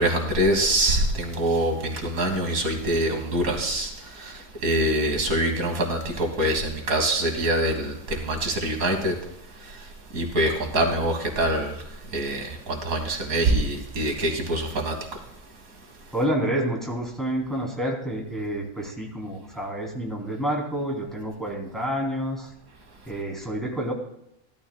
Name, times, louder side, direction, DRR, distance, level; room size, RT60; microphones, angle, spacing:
voice 1, 0.0-3.9 4.2-4.3 4.6-9.1 10.1-11.7 12.1-14.9, right 1 dB, 80° right, 3 dB, 2.0 m, -24 dB
voice 2, 16.1-22.5 23.1-23.9, right 1 dB, ahead, -2 dB, 2.9 m, -29 dB
16.0 x 12.5 x 2.3 m, 0.79 s
omnidirectional pair, 1.5 m